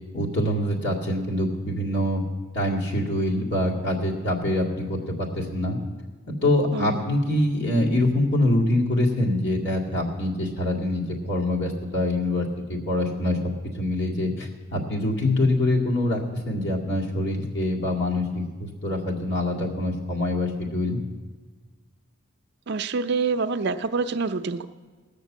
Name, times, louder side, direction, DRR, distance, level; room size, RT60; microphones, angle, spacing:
voice 1, 0.1-2.2 2.5-5.8 6.3-13.4 13.7-21.0, left 1 dB, 60° left, -2 dB, 2.2 m, -25 dB
voice 2, 6.7-7.1 22.7-24.6, right 4 dB, 60° right, 10 dB, 0.5 m, -26 dB
18.0 x 6.7 x 7.3 m, 1.4 s
head